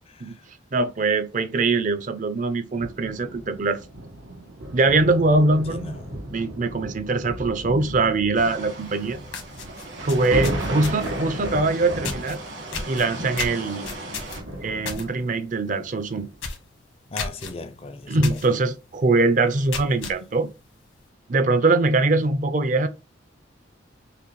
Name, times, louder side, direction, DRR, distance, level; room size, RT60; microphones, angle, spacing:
voice 1, 0.7-3.8 4.7-6.0 6.3-9.2 10.0-12.4 12.9-13.9 14.6-16.3 18.1-20.5 21.3-22.9, right 3 dB, 40° right, 0.5 m, -22 dB
sound 1, 2.8-15.5 16.2-16.4, right 1 dB, 80° right, 1.2 m, -35 dB
voice 2, 5.7-6.3 10.2-10.4 17.1-18.4, left 2 dB, 30° left, 0.4 m, -38 dB
sound 2, 8.3-14.4, right 2 dB, 60° right, 1.5 m, -38 dB
sound 3, 8.9-9.0 9.3-11.2 12.0-12.4 12.7-15.1 15.4-15.7 15.9-16.0 16.4-16.7 17.2-17.5 18.2-18.5 18.9-19.0 19.5-20.2, left 5 dB, 90° left, 1.2 m, -33 dB
5.7 x 2.2 x 3.1 m
head